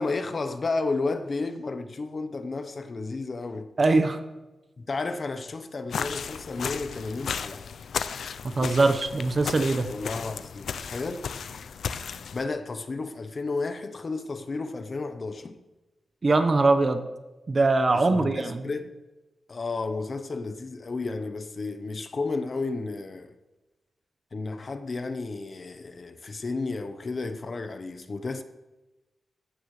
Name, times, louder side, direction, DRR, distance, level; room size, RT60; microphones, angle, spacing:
voice 1, 0.0-3.7 4.9-7.7 9.9-11.3 12.3-15.6 17.9-18.9 19.5-23.4 24.3-28.4, left 3 dB, 40° left, 0.9 m, -32 dB
voice 2, 3.8-4.2 8.4-9.9 16.2-17.0 17.5-18.7, right 3 dB, 35° right, 1.0 m, -22 dB
sound 1, 5.9-12.4, left 6 dB, 85° left, 0.6 m, -34 dB
18.5 x 15.5 x 3.3 m
wide cardioid pair, 135°, 0 cm